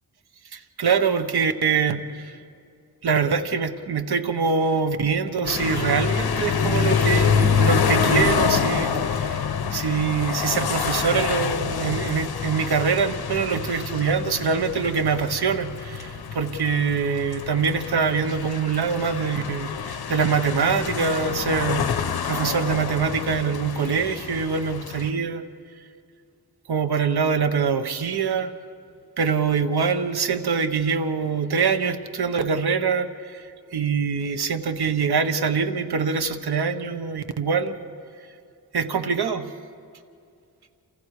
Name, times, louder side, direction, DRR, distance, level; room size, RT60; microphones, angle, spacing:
voice 1, 0.5-2.3 3.0-9.4 9.7-25.4 26.7-28.5 29.2-33.4 33.7-37.8 38.7-39.5, right 5 dB, 90° right, 9 dB, 1.3 m, -24 dB
sound 1, 5.4-25.1, left 6 dB, 80° left, 1.1 m, -26 dB
29.0 x 27.5 x 4.9 m, 2.4 s
wide cardioid pair, 130°, 37 cm